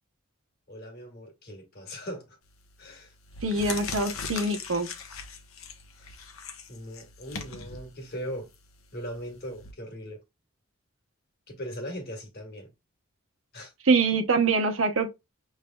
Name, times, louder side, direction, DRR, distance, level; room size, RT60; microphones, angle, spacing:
voice 1, 0.7-2.4 2.8-3.1 6.0-6.1 6.7-8.5 8.9-10.2 11.5-12.7 13.5-13.7, equal, 50° left, 1.6 m, -39 dB
sound 1, 2.5-2.7 3.2-9.7, left 5 dB, 85° left, 0.9 m, -40 dB
voice 2, 3.4-4.9 13.8-15.1, right 3 dB, 75° right, 0.9 m, -24 dB
6.6 x 3.3 x 2.2 m
head